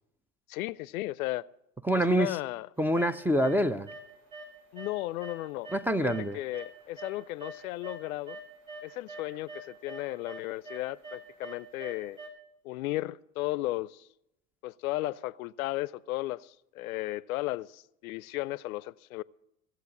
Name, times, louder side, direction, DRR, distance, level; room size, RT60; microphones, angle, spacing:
voice 1, 0.5-1.4 1.9-2.7 4.7-5.7 6.0-8.4 8.8-12.2 12.6-14.1 14.6-19.2, left 17 dB, 75° left, 0.5 m, -35 dB
voice 2, 1.8-2.4 2.8-3.9 5.7-6.4, right 1 dB, 5° right, 0.5 m, -26 dB
sound 1, 3.0-3.6 3.9-4.5 4.8-8.0 8.3-12.3, right 2 dB, 55° right, 5.0 m, -44 dB
16.5 x 7.8 x 8.3 m
hypercardioid pair, 80°, 42 cm